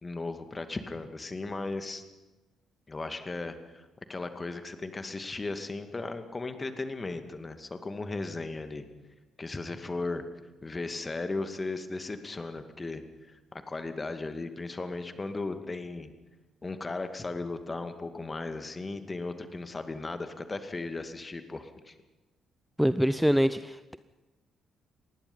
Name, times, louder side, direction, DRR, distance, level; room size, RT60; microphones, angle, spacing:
voice 1, 0.0-2.0 2.9-8.9 9.4-10.2 10.6-16.1 16.6-22.0, left 3 dB, 25° left, 9 dB, 2.3 m, -36 dB
voice 2, 22.8-24.0, equal, ahead, 14 dB, 0.7 m, -25 dB
27.0 x 20.0 x 5.7 m, 1.1 s
figure-of-eight pair, 45°, 0 cm